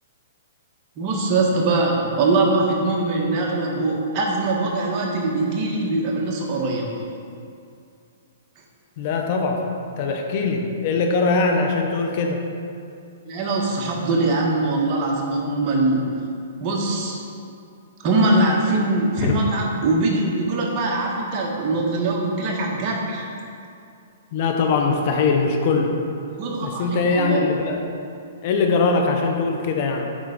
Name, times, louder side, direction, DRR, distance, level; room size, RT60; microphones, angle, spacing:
voice 1, 1.0-6.9 13.2-16.1 16.6-17.2 18.0-23.3 26.4-27.4, right 2 dB, 30° right, -2 dB, 1.3 m, -22 dB
voice 2, 9.0-9.6 10.0-12.4 19.2-19.4 24.3-25.9 26.6-27.9 28.4-30.1, left 4 dB, 40° left, 3 dB, 0.8 m, -21 dB
8.9 x 3.7 x 5.3 m, 2.5 s
hypercardioid pair, 155°, 0 cm